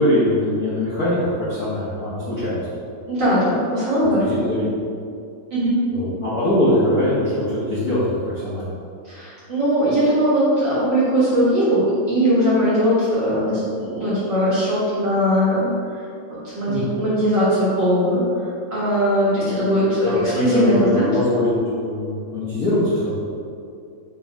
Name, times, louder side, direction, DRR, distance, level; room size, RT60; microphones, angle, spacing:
voice 1, 0.0-2.6 4.1-4.7 5.9-8.7 16.7-16.9 20.1-23.2, left 1 dB, 75° left, -10 dB, 0.8 m, -22 dB
voice 2, 3.1-4.2 5.5-5.8 9.1-15.7 16.5-18.2 18.7-21.1, equal, 45° right, -11 dB, 1.6 m, -19 dB
5.1 x 4.7 x 4.6 m, 2.4 s
omnidirectional pair, 3.8 m